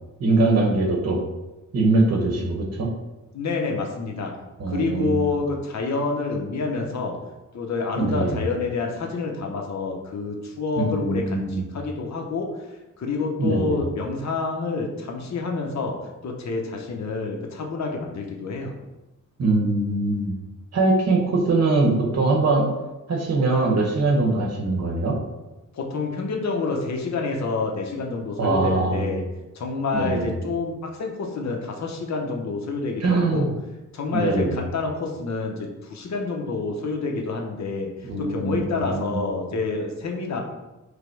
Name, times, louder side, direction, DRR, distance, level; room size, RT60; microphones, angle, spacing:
voice 1, 0.2-1.2 1.7-2.9 4.6-5.3 8.0-8.4 10.8-11.6 13.4-13.8 19.4-20.3 20.7-22.7 23.1-25.2 28.4-29.2 29.9-30.3 33.0-33.5 34.1-34.6 38.0-39.2, right 2 dB, 55° right, -1 dB, 0.9 m, -22 dB
voice 2, 3.3-4.3 4.7-7.2 7.5-12.6 13.0-16.0 16.2-18.7 25.7-29.2 29.5-33.5 33.9-40.4, left 4 dB, 60° left, 1 dB, 0.7 m, -28 dB
5.0 x 2.0 x 4.5 m, 1.0 s
wide cardioid pair, 175°, 32 cm